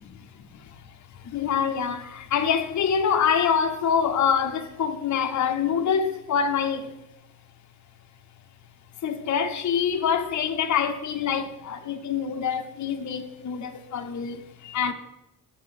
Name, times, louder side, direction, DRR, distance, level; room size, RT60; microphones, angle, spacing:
voice 1, 1.3-6.9 9.0-14.4 14.7-14.9, left 7 dB, 55° left, 0.6 m, -25 dB
5.8 x 4.6 x 5.6 m
cardioid pair, 100°, 35 cm